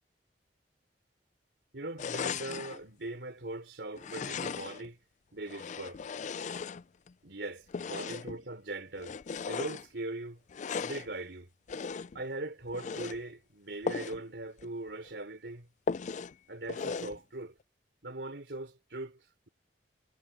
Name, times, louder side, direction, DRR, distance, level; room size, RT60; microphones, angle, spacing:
voice 1, 1.7-5.0 5.3-6.0 7.2-9.2 9.5-10.4 10.8-11.5 12.1-15.7 16.5-17.6 18.0-19.5, right 2 dB, 75° right, 3.6 m, -40 dB
sound 1, 2.0-2.8 4.0-4.9 5.4-7.1 7.7-8.4 9.0-9.9 10.5-11.1 11.7-12.2 12.7-13.2 13.8-14.2 14.6-14.7 15.0-15.1 15.9-16.3 16.7-17.2, left 5 dB, 45° left, 0.4 m, -37 dB
head